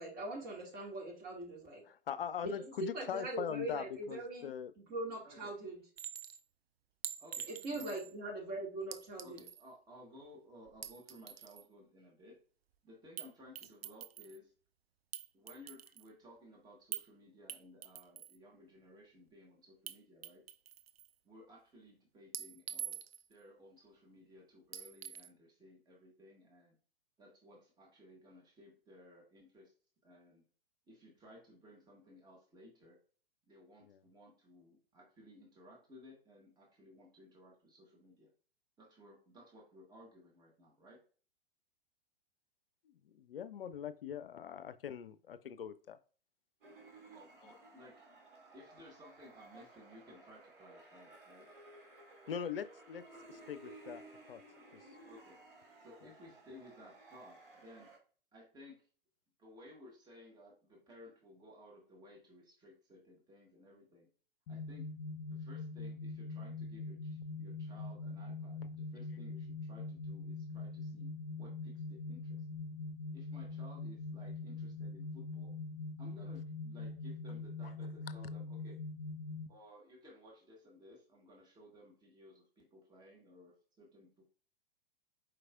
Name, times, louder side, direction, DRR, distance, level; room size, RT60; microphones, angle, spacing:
voice 1, 0.0-1.8 2.4-2.5 2.8-4.5 4.8-5.8 7.5-9.4, right 2 dB, 30° right, -1 dB, 2.0 m, -41 dB
voice 2, 1.9-4.7 33.8-34.0 43.3-46.0 47.4-47.5 52.3-53.0 53.3-54.0 54.3-54.4 54.7-54.9, left 8 dB, 70° left, 14 dB, 0.5 m, -41 dB
Chink clink, 6.0-6.4 7.0-8.1 8.9-9.7 10.7-11.7 13.2-13.3 13.6-14.4 15.1-16.1 16.9-17.1 17.5-18.4 19.9-20.0 20.2-21.1 22.3-23.3 24.7-25.3, right 8 dB, 80° right, 0.5 m, -45 dB
voice 3, 7.2-7.9 9.2-12.4 12.8-14.5 15.3-20.4 21.2-23.0 23.3-26.7 27.2-29.7 30.0-30.4 30.9-33.0 33.5-38.3 38.8-41.0 47.1-47.9 48.5-51.5 55.1-55.4 55.8-57.9 58.3-58.8 59.4-64.1 64.5-64.9 65.3-71.1 71.4-72.4 73.1-75.5 76.0-78.8 79.5-84.2, left 1 dB, 15° right, -2 dB, 1.5 m, -58 dB
sound 1, 46.6-58.0, right 2 dB, 60° right, 2.2 m, -57 dB
sound 2, 64.5-79.5, left 3 dB, 40° left, 1.2 m, -43 dB
4.9 x 4.5 x 2.4 m, 0.40 s
figure-of-eight pair, 105°, 30 cm